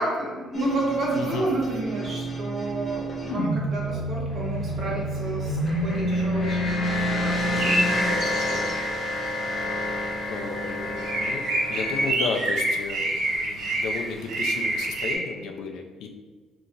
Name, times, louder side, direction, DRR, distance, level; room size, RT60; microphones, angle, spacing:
voice 1, 0.0-8.9, right 1 dB, 35° right, -3 dB, 0.9 m, -31 dB
sound 1, 0.5-12.1, equal, 25° left, 1.3 m, -28 dB
voice 2, 1.1-1.5 10.3-16.1, left 5 dB, 70° left, 4 dB, 0.5 m, -33 dB
sound 2, 7.6-9.1 9.4-9.5 9.9-10.1 10.4-15.1, right 2 dB, 80° right, 1.1 m, -27 dB
5.3 x 2.9 x 2.5 m, 1.4 s
cardioid pair, 170°, 0 cm